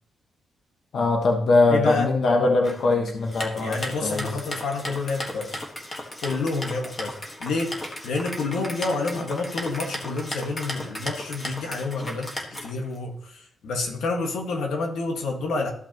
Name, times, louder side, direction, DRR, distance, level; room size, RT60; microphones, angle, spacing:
voice 1, 0.9-4.4, left 3 dB, 55° left, 2 dB, 1.3 m, -22 dB
voice 2, 1.7-2.1 3.6-5.6 6.2-7.1 7.4-7.7 8.0-12.3 12.6-15.7, left 3 dB, 90° left, 1 dB, 1.7 m, -28 dB
sound 1, 2.6-13.0, left 1 dB, 20° left, 1.5 m, -35 dB
14.0 x 5.7 x 3.0 m, 0.64 s
wide cardioid pair, 145°, 0 cm